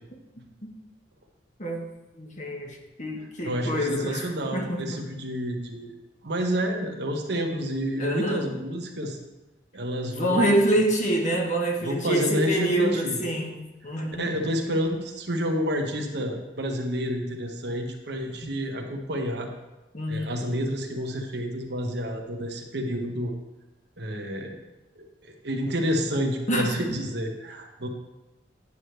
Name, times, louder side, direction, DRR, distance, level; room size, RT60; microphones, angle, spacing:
voice 1, 2.1-5.0 8.0-8.5 10.1-14.3 18.4-18.5 19.9-20.3 26.5-26.9, right 1 dB, 40° left, 1 dB, 1.3 m, -26 dB
voice 2, 3.4-6.0 6.2-9.2 9.7-10.6 11.8-13.2 14.2-19.5 20.1-23.3 24.0-24.6 24.9-27.9, equal, 60° right, 3 dB, 1.1 m, -29 dB
9.5 x 7.7 x 3.4 m, 1.0 s
head